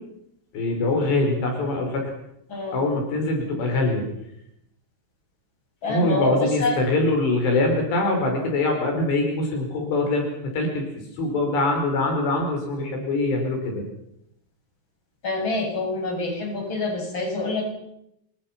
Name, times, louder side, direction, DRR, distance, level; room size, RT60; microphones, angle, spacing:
voice 1, 0.5-2.1 2.7-4.1 5.9-10.8 11.2-13.9, left 2 dB, 75° left, 2 dB, 7.0 m, -23 dB
voice 2, 2.5-2.8 5.8-6.8 15.2-17.7, left 2 dB, 25° left, 1 dB, 7.8 m, -26 dB
28.0 x 23.5 x 5.9 m, 0.78 s
omnidirectional pair, 5.0 m